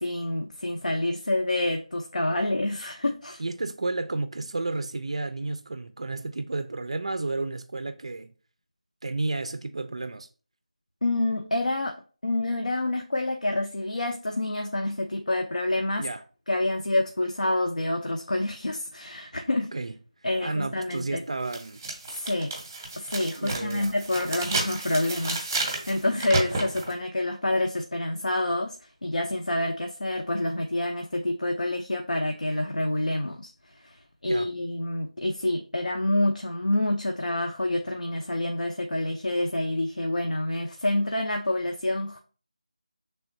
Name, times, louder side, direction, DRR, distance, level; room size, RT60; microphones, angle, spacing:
voice 1, 0.0-3.4 11.0-12.0 12.2-16.1 16.5-19.7 20.2-21.2 22.1-22.5 23.0-28.8 29.0-33.5 33.8-34.0 34.2-42.2, left 1 dB, 75° left, 0.7 m, -27 dB
voice 2, 3.4-8.3 9.0-10.3 16.0-16.2 19.7-19.9 20.4-21.8 23.4-23.9 34.2-34.5, right 3 dB, 50° right, 0.4 m, -32 dB
sound 1, 20.9-21.0 21.5-26.9, right 2 dB, 15° right, 0.8 m, -32 dB
5.9 x 3.4 x 2.6 m
figure-of-eight pair, 165°, 4 cm